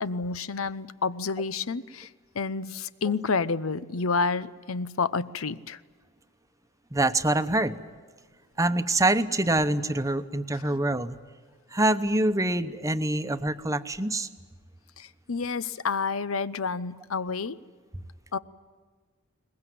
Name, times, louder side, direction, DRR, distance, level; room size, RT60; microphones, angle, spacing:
voice 1, 0.0-2.1 2.3-5.8 15.0-17.6 18.3-18.4, left 4 dB, 90° left, 16 dB, 0.8 m, -29 dB
voice 2, 6.9-7.8 8.6-11.2 11.7-14.3, right 2 dB, 15° right, 10 dB, 0.9 m, -25 dB
22.5 x 20.5 x 9.2 m, 1.5 s
head